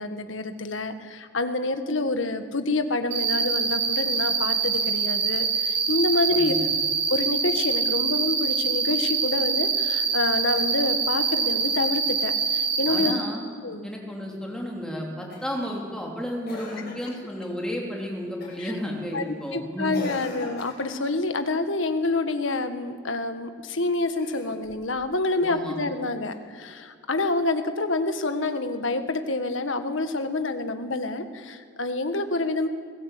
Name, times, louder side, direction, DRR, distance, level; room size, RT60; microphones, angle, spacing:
voice 1, 0.0-6.5 7.1-13.2 13.6-13.9 18.6-18.7 19.1-19.2 19.5-32.7, left 2 dB, 75° left, 8 dB, 1.6 m, -27 dB
Cricket, 3.1-13.1, right 5 dB, 70° right, 5.1 m, -25 dB
voice 2, 6.3-6.7 12.9-13.4 13.8-19.9 25.4-25.8, equal, 5° left, -1 dB, 3.3 m, -32 dB
Cough, 15.3-15.7 16.5-17.2 18.4-18.7 19.9-21.0 24.1-24.9 26.3-26.4, left 2 dB, 50° left, 7.9 m, -39 dB
26.0 x 16.0 x 8.4 m, 2.1 s
head